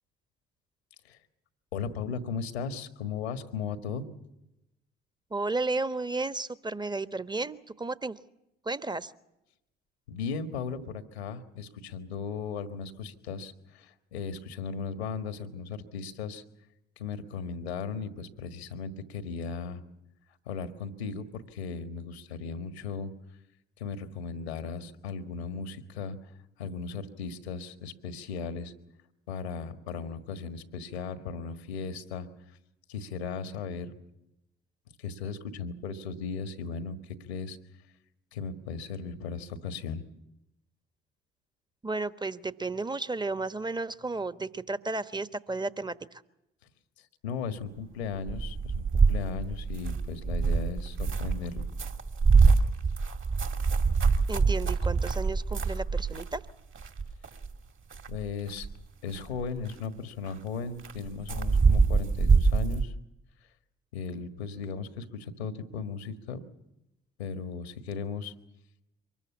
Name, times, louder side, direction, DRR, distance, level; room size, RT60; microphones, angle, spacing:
voice 1, 1.7-4.1 10.1-16.4 17.0-19.8 20.4-23.1 23.8-26.3 26.6-28.7 29.3-32.3 32.9-33.9 35.0-37.6 38.3-40.0 47.0-51.7 58.1-58.7 59.0-62.9 63.9-66.4 67.2-68.3, left 5 dB, 90° left, 9 dB, 1.6 m, -36 dB
voice 2, 5.3-8.2 8.6-9.1 41.8-46.2 54.3-56.4, right 3 dB, 15° right, 12 dB, 1.2 m, -33 dB
sound 1, 48.2-56.5 56.7-57.5 57.9-58.8 59.1-59.7 60.2-60.3 60.8-62.8, right 4 dB, 40° right, 2.4 m, -25 dB
24.0 x 20.5 x 7.2 m, 0.88 s
hypercardioid pair, 50°, 31 cm